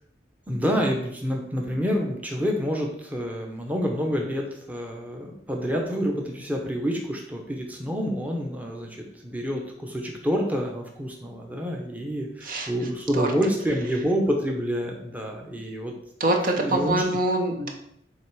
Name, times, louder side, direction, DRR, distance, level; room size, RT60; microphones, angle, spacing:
voice 1, 0.5-15.9 16.6-17.0, equal, 10° right, 0 dB, 0.8 m, -28 dB
voice 2, 16.2-17.7, right 1 dB, 50° right, 3 dB, 0.9 m, -24 dB
7.6 x 3.0 x 4.7 m, 0.73 s
head